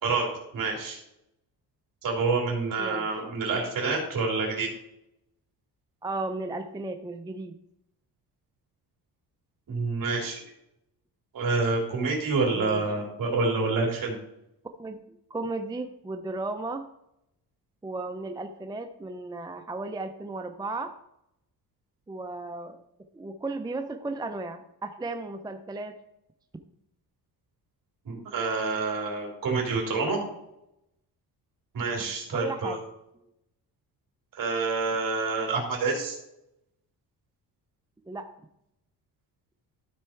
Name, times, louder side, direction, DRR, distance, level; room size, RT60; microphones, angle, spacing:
voice 1, 0.5-1.0 2.0-4.7 9.7-10.4 11.3-14.1 28.0-30.2 31.7-32.8 34.3-36.1, right 3 dB, 55° right, 0 dB, 3.4 m, -27 dB
voice 2, 6.0-7.5 12.5-13.0 14.8-16.8 17.8-20.9 22.1-22.8 23.1-26.0 32.3-32.8 38.1-38.3, right 2 dB, 10° right, 6 dB, 0.5 m, -35 dB
12.5 x 4.4 x 4.5 m, 0.82 s
cardioid pair, 120°, 39 cm